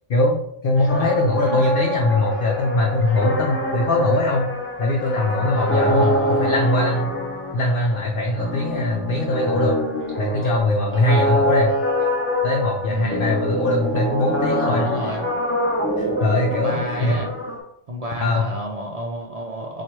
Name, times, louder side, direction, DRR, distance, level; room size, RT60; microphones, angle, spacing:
voice 1, 0.1-4.4 4.8-7.1 7.5-9.8 10.2-11.7 12.4-14.8 16.0-17.2 18.2-18.5, left 2 dB, 55° left, 1 dB, 0.7 m, -21 dB
voice 2, 0.8-1.1 1.5-1.6 5.7-6.6 12.9-13.4 14.7-15.2 16.5-17.3 17.9-19.8, right 1 dB, 55° right, -1 dB, 0.4 m, -30 dB
johnson warble, 0.9-17.6, equal, 15° left, 0.5 m, -25 dB
4.4 x 2.4 x 4.5 m, 0.75 s
omnidirectional pair, 1.3 m